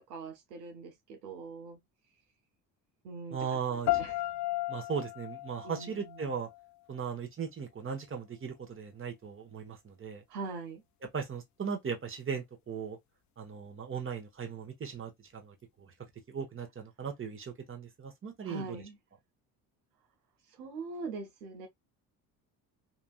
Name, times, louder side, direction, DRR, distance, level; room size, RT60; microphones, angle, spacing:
voice 1, 0.0-1.8 3.0-4.2 5.6-6.4 10.3-10.8 18.4-19.0 20.6-21.7, right 4 dB, 85° right, 0.7 m, -42 dB
voice 2, 3.3-3.9 4.7-6.5 6.9-10.2 11.1-13.0 13.4-15.5 16.3-18.8, right 6 dB, 25° right, 1.2 m, -38 dB
sound 1, 3.9-6.9, left 16 dB, 40° left, 0.4 m, -35 dB
2.9 x 2.7 x 2.3 m
hypercardioid pair, 55°, 48 cm